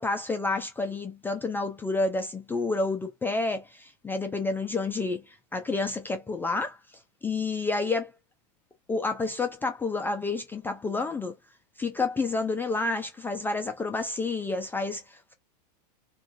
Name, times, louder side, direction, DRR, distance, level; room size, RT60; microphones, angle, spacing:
voice 1, 0.0-6.8 7.2-8.1 8.9-11.4 11.8-15.3, left 3 dB, 10° left, 0.3 m, -29 dB
3.0 x 2.4 x 2.5 m
hypercardioid pair, 110°, 21 cm